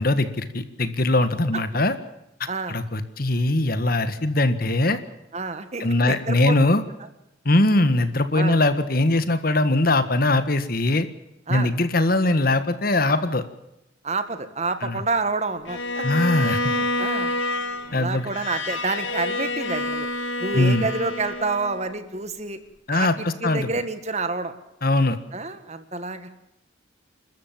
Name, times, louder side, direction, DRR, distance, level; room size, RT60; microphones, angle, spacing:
voice 1, 0.0-1.9 2.7-5.0 5.8-6.8 7.4-11.1 11.5-13.4 14.8-15.0 16.0-16.7 17.9-18.3 20.5-20.9 22.9-23.7 24.8-25.2, left 2 dB, 50° left, 11 dB, 1.6 m, -21 dB
voice 2, 2.5-2.8 5.3-6.6 8.3-8.6 11.5-11.7 14.0-16.1 16.7-17.3 17.9-20.1 20.4-22.6 22.9-24.5 25.3-26.3, right 3 dB, 35° right, 10 dB, 1.8 m, -28 dB
Bowed string instrument, 15.7-21.9, left 2 dB, 80° left, 2.0 m, -28 dB
29.0 x 13.5 x 7.4 m, 0.87 s
head